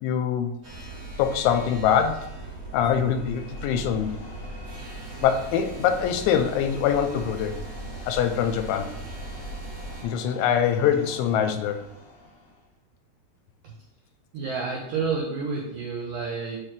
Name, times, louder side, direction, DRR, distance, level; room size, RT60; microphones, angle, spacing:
voice 1, 0.0-0.5 1.2-2.3 2.7-4.2 5.2-7.6 8.1-8.9 10.0-11.9, left 8 dB, 90° left, 7 dB, 3.0 m, -24 dB
sound 1, 0.6-10.0, right 2 dB, 60° right, 1.1 m, -39 dB
sound 2, 2.9-12.7, left 2 dB, 55° left, 2.5 m, -46 dB
voice 2, 14.3-16.6, right 5 dB, 90° right, -2 dB, 1.9 m, -29 dB
8.3 x 3.3 x 4.4 m, 0.81 s
omnidirectional pair, 5.2 m